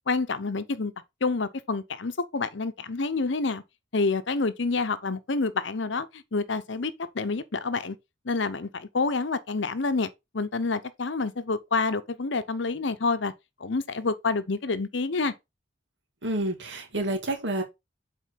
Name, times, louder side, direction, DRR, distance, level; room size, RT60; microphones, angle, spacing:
voice 1, 0.1-0.9 1.2-3.6 3.9-8.0 8.2-10.1 10.3-13.3 13.6-15.3, left 3 dB, 70° left, 0.8 m, -28 dB
voice 2, 16.2-17.6, right 1 dB, 70° right, 2.0 m, -29 dB
7.4 x 4.4 x 4.0 m
head